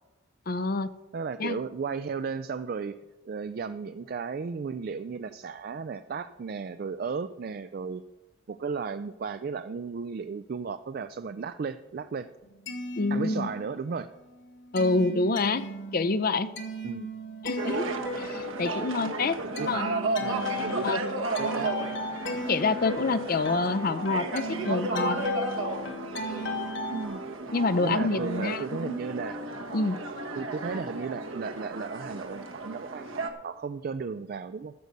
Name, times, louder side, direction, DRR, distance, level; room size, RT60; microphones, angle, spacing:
voice 1, 0.5-0.9 1.4-1.6 13.0-13.5 14.7-15.6 15.9-16.5 17.4-17.8 18.2-19.4 19.7-19.9 20.8-21.0 22.5-25.2 27.5-29.0 29.7-30.0, left 3 dB, 45° left, 14 dB, 0.5 m, -27 dB
voice 2, 1.1-3.0 3.2-8.0 8.5-12.3 13.1-14.1 16.8-17.1 19.1-21.8 26.9-27.2 27.8-29.4 30.3-34.7, right 5 dB, 45° right, 11 dB, 0.3 m, -35 dB
sound 1, 12.4-13.9 14.2-27.0, left 1 dB, 60° left, 1.6 m, -36 dB
sound 2, 17.6-33.3, right 2 dB, 75° right, 1.4 m, -34 dB
14.0 x 6.7 x 6.6 m, 1.1 s
head